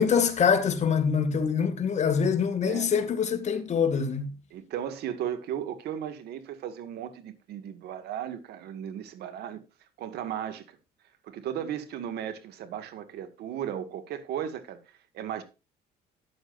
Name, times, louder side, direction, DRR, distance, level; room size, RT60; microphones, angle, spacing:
voice 1, 0.0-4.3, left 6 dB, 45° left, 2.4 m, -24 dB
voice 2, 4.5-9.6 10.0-10.8 11.2-14.8 15.1-15.4, right 9 dB, 75° right, 2.1 m, -35 dB
14.0 x 10.0 x 2.6 m
cardioid pair, 110°, 17 cm